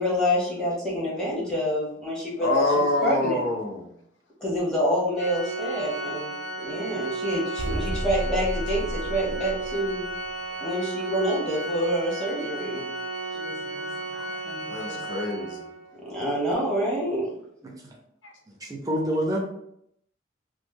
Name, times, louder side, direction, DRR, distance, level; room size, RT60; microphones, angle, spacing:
voice 1, 0.0-3.4 4.4-10.0 10.6-12.9 15.9-17.3, equal, 5° left, -5 dB, 1.0 m, -27 dB
voice 2, 2.4-3.9 14.1-14.4 14.7-15.7 18.2-18.3, left 2 dB, 80° left, 2 dB, 0.6 m, -26 dB
Organ, 5.2-15.9, right 2 dB, 40° left, 1.4 m, -34 dB
sound 1, 7.6-10.3, right 1 dB, 75° right, 0.5 m, -32 dB
voice 3, 13.3-13.9 14.4-15.0 15.4-15.5 17.6-17.9 18.6-19.4, equal, 20° right, -1 dB, 0.5 m, -31 dB
3.0 x 2.0 x 3.4 m, 0.72 s
head